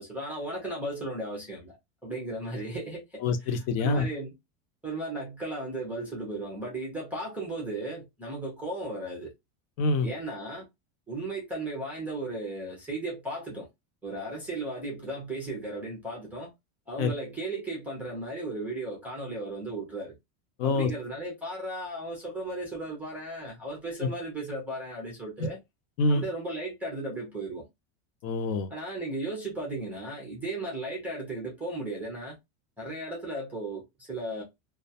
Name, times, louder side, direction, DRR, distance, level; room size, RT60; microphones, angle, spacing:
voice 1, 0.0-1.8 2.0-3.2 3.8-4.3 4.8-9.3 10.0-10.7 11.1-13.7 14.0-16.5 16.9-20.1 20.6-25.6 26.1-27.6 28.7-32.4 32.8-34.4, right 2 dB, 5° right, 0.3 m, -35 dB
voice 2, 3.2-4.1 9.8-10.1 17.0-17.1 20.6-20.9 24.0-24.1 26.0-26.2 28.2-28.7, left 3 dB, 75° left, 0.7 m, -25 dB
2.2 x 2.1 x 2.6 m
supercardioid pair, 160°, 41 cm